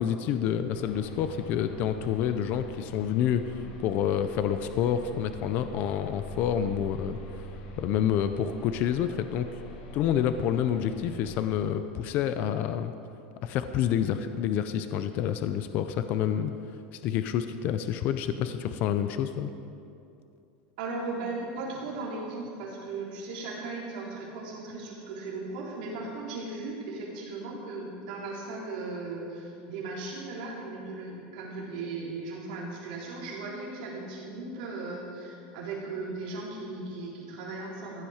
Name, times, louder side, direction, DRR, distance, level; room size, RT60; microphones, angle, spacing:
voice 1, 0.0-3.5 3.8-7.5 7.8-9.5 9.9-12.9 13.4-16.5 16.9-19.5, left 9 dB, 35° left, 10 dB, 0.5 m, -28 dB
sound 1, 0.7-11.6, left 1 dB, 85° left, 1.9 m, -43 dB
voice 2, 20.8-38.0, right 3 dB, 65° right, -4 dB, 3.5 m, -37 dB
15.5 x 10.5 x 5.0 m, 2.6 s
supercardioid pair, 175°, 5 cm